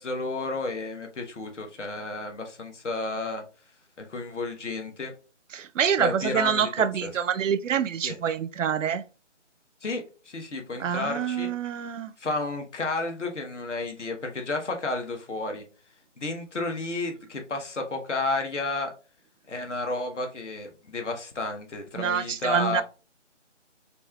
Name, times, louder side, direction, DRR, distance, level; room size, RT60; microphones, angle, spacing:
voice 1, 0.0-3.4 4.0-5.1 6.0-6.7 7.0-7.1 8.0-8.1 9.8-11.5 12.2-15.6 16.2-18.9 19.5-22.8, left 3 dB, 70° left, 1.1 m, -31 dB
voice 2, 5.5-9.0 10.8-12.1 22.0-22.8, right 8 dB, 90° right, 0.5 m, -26 dB
4.3 x 3.4 x 2.2 m
figure-of-eight pair, 170°, 37 cm